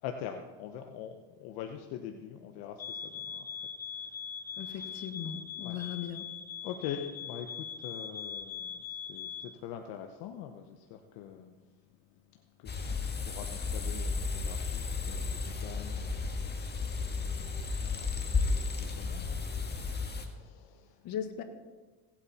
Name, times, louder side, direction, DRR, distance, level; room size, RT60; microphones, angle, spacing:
voice 1, 0.0-4.2 4.4-5.1 5.6-5.8 6.6-11.5 12.3-16.5 16.8-19.5 19.8-21.0, left 9 dB, 85° left, 5 dB, 0.9 m, -44 dB
sound 1, 2.8-9.5, left 7 dB, 45° left, 1.3 m, -41 dB
voice 2, 4.6-6.3 21.0-21.4, left 9 dB, 65° left, 7 dB, 1.6 m, -38 dB
sound 2, 12.7-20.3, left 4 dB, 25° left, 1.7 m, -33 dB
17.5 x 8.8 x 4.2 m, 1.3 s
supercardioid pair, 90°, 37 cm